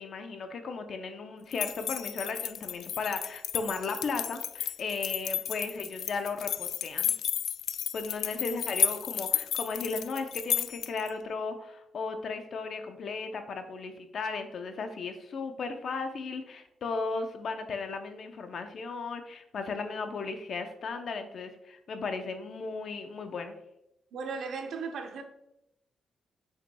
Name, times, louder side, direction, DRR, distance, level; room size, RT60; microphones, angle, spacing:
voice 1, 0.0-7.1 7.9-23.5, left 4 dB, 55° left, 7 dB, 0.7 m, -36 dB
sound 1, 1.5-11.1, left 9 dB, 80° left, 0.3 m, -32 dB
voice 2, 24.1-25.2, right 5 dB, 70° right, 5 dB, 0.9 m, -36 dB
7.0 x 5.7 x 2.3 m, 0.83 s
cardioid pair, 130°, 0 cm